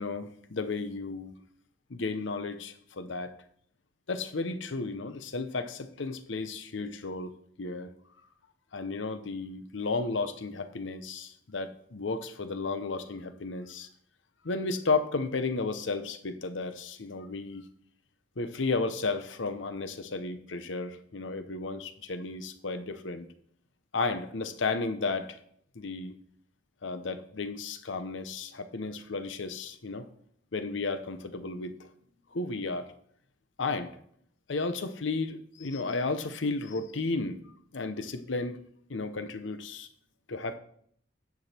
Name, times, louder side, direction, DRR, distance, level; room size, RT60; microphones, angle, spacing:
voice 1, 0.0-1.3 1.9-3.3 4.1-7.9 8.7-13.9 14.4-17.6 18.4-23.3 23.9-25.4 25.7-26.1 26.8-30.1 30.5-31.9 32.3-32.9 33.6-33.9 34.5-37.4 37.7-38.6 38.9-39.9 40.3-40.6, left 3 dB, 80° left, 10 dB, 0.8 m, -33 dB
9.7 x 6.2 x 4.3 m, 0.65 s
head